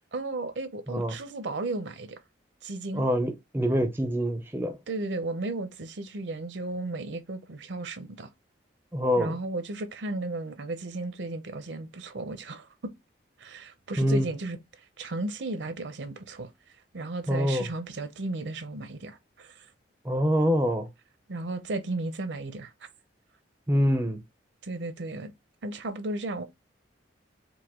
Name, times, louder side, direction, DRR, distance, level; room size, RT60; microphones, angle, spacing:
voice 1, 0.1-2.2 2.6-3.1 4.9-8.3 9.2-12.9 13.4-14.6 15.0-16.5 16.9-19.7 21.3-22.7 24.6-25.3 25.6-26.4, right 2 dB, 70° right, 0.6 m, -34 dB
voice 2, 2.9-4.8 8.9-9.4 14.0-14.3 17.3-17.7 20.0-20.9 23.7-24.2, equal, 10° right, 0.4 m, -25 dB
4.8 x 2.2 x 3.6 m
head